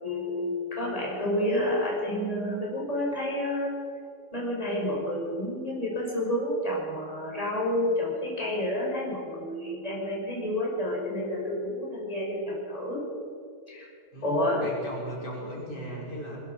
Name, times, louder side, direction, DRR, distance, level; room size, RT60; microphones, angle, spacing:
voice 1, 0.0-3.7 4.3-13.0 13.7-13.9 14.2-14.6, left 1 dB, 20° left, -4 dB, 5.9 m, -29 dB
voice 2, 14.1-16.4, equal, 75° left, -4 dB, 6.0 m, -38 dB
21.5 x 21.0 x 5.7 m, 2.4 s
omnidirectional pair, 1.8 m